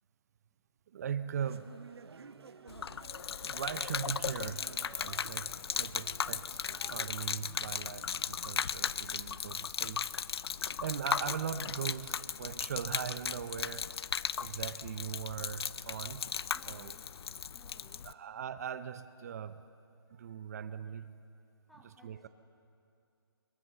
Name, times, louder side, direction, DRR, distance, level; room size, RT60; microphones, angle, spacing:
voice 1, 0.9-1.7 3.4-10.1 10.8-13.9 14.4-16.2 16.7-16.9 18.0-19.6 20.1-21.2 22.0-22.3, right 8 dB, 40° right, 13 dB, 0.7 m, -40 dB
sound 1, 1.4-7.1, right 5 dB, 75° right, 1.0 m, -53 dB
Gurgling / Liquid, 2.7-18.1, left 7 dB, 70° left, 0.5 m, -37 dB
sound 2, 6.6-13.4, left 3 dB, 40° left, 3.0 m, -69 dB
voice 2, 16.5-18.2 21.7-22.3, left 1 dB, ahead, 3 dB, 0.8 m, -62 dB
22.5 x 22.0 x 6.8 m, 2.5 s
hypercardioid pair, 160°, 14 cm